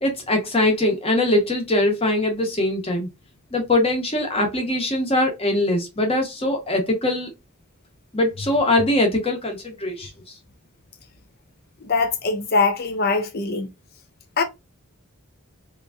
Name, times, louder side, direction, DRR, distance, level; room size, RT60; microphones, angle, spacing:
voice 1, 0.0-3.1 3.5-7.3 8.1-10.1, left 1 dB, 25° left, 1.1 m, -22 dB
voice 2, 11.8-13.7 14.4-14.5, left 4 dB, 45° left, 0.6 m, -22 dB
3.5 x 3.0 x 2.5 m
head